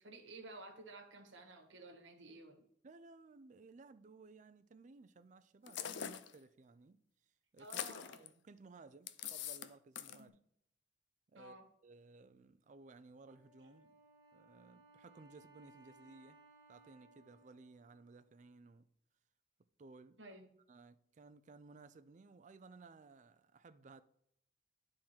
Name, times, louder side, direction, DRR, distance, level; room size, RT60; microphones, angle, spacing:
voice 1, 0.0-2.7 7.6-8.2 10.1-10.3 11.3-11.7 20.2-20.5, right 2 dB, 65° right, 1.3 m, -53 dB
voice 2, 2.8-7.0 7.5-7.8 8.2-10.4 11.3-11.5 11.8-14.0 14.3-16.4 16.7-18.9 19.8-20.2 20.7-24.0, right 3 dB, 40° right, 0.4 m, -58 dB
sound 1, 5.7-6.3 7.6-8.3 9.1-9.7 10.0-10.2, left 9 dB, 60° left, 0.4 m, -43 dB
Wind instrument woodwind instrument, 13.3-18.7, right 3 dB, 15° right, 1.4 m, -65 dB
10.5 x 3.8 x 4.4 m
head